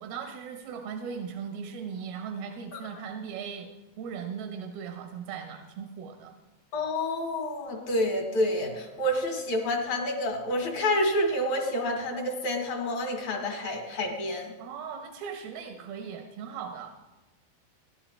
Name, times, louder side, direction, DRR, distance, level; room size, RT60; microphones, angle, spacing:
voice 1, 0.0-3.7 4.0-6.3 14.6-16.9, right 7 dB, 80° right, 5 dB, 3.0 m, -38 dB
voice 2, 6.7-14.5, left 1 dB, 55° left, 2 dB, 2.6 m, -28 dB
17.0 x 11.5 x 4.3 m, 1.1 s
omnidirectional pair, 4.3 m